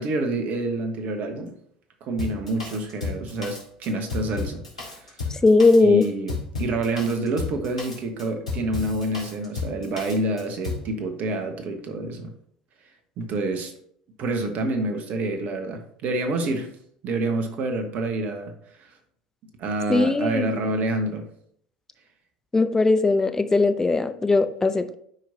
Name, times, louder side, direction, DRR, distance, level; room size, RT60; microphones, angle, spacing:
voice 1, 0.0-1.5 2.0-4.6 5.8-12.3 13.2-13.7 14.2-16.7 17.0-18.5 19.6-21.3, right 2 dB, 45° right, 6 dB, 1.2 m, -27 dB
Drum kit, 2.2-10.9, left 4 dB, 85° left, 1.8 m, -33 dB
voice 2, 5.3-6.0 19.9-20.5 22.5-24.9, left 3 dB, 15° left, 9 dB, 0.6 m, -19 dB
11.5 x 4.8 x 2.7 m, 0.66 s
figure-of-eight pair, 70°, 4 cm